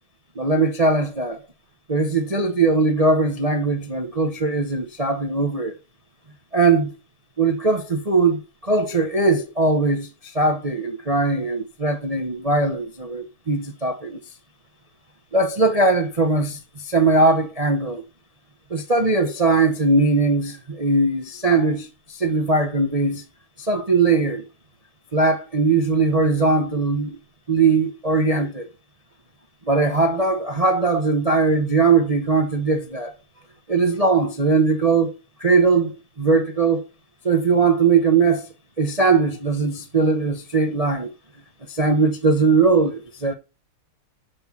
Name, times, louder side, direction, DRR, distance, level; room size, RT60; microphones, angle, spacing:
voice 1, 0.4-1.4 1.9-5.8 6.5-7.0 7.4-14.2 15.3-18.0 18.7-23.2 23.6-24.4 25.1-27.2 27.5-28.7 29.6-33.1 33.7-35.1 35.4-36.8 37.2-38.5 38.8-41.1 41.7-43.3, right 3 dB, 40° right, 0.5 m, -20 dB
6.7 x 5.9 x 7.1 m
omnidirectional pair, 2.4 m